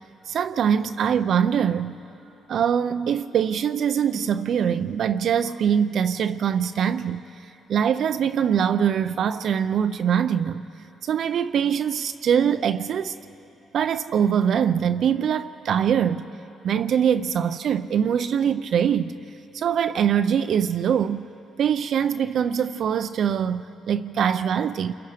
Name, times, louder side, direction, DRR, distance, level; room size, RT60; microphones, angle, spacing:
voice 1, 0.3-2.0 2.5-10.6 11.0-13.2 13.7-16.3 16.6-19.1 19.5-21.3 21.6-24.9, right 8 dB, 65° right, 0.5 m, -23 dB
29.0 x 23.0 x 5.0 m
cardioid pair, 90°, 0 cm